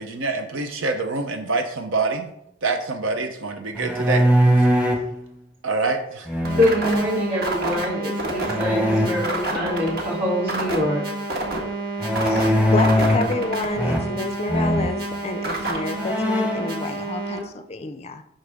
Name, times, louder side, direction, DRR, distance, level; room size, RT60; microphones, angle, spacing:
voice 1, 0.0-2.3 2.6-4.2 4.6-4.8 5.6-6.3, right 3 dB, 85° right, 5 dB, 0.7 m, -26 dB
sound 1, 3.7-5.1 6.3-7.0 8.5-9.1 12.0-13.4 13.7-14.2 14.5-14.9 15.5-15.6 16.0-16.7, equal, 5° right, 0.9 m, -20 dB
sound 2, 6.4-17.4, right 2 dB, 55° right, 1.5 m, -29 dB
voice 2, 6.5-11.0, left 1 dB, 30° right, -4 dB, 3.1 m, -24 dB
voice 3, 12.2-18.2, left 2 dB, 35° left, 9 dB, 0.4 m, -29 dB
8.8 x 5.5 x 3.5 m, 0.77 s
head